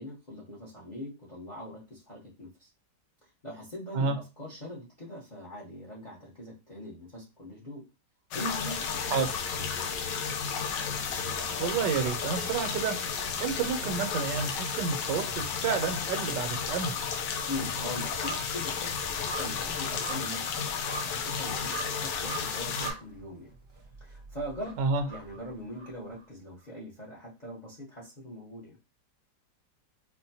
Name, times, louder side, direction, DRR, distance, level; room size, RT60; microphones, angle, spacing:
voice 1, 0.0-2.7 3.4-7.9 8.3-9.4 9.7-10.0 17.5-23.5 24.0-24.8 25.1-28.8, left 1 dB, 35° left, -3 dB, 0.7 m, -41 dB
sound 1, 8.3-22.9, left 6 dB, 85° left, 1.3 m, -33 dB
Musical instrument, 8.9-15.8, equal, 60° left, 1.1 m, -49 dB
voice 2, 11.6-13.0 13.4-17.0 24.8-25.0, right 5 dB, 80° right, 7 dB, 1.3 m, -30 dB
sound 2, 16.9-26.3 26.6-26.7, right 4 dB, 40° right, 0.4 m, -44 dB
4.4 x 2.1 x 2.7 m, 0.27 s
omnidirectional pair, 1.9 m